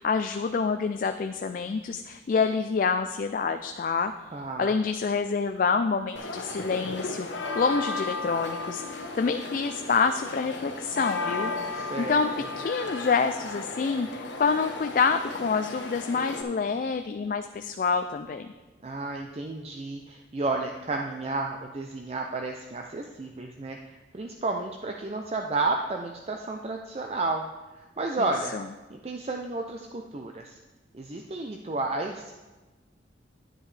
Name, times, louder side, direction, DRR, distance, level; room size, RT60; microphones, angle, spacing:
voice 1, 0.0-4.1 4.6-12.3 12.6-18.5 28.2-28.3 28.5-28.6, left 5 dB, 45° left, 8 dB, 0.3 m, -27 dB
voice 2, 4.3-4.7 11.7-12.2 18.8-27.4 27.8-28.6 28.9-30.6 30.9-32.3, right 3 dB, 35° right, 3 dB, 0.5 m, -32 dB
sound 1, 6.2-16.4, left 3 dB, 85° left, 1.0 m, -35 dB
10.0 x 9.8 x 3.3 m, 1.2 s
head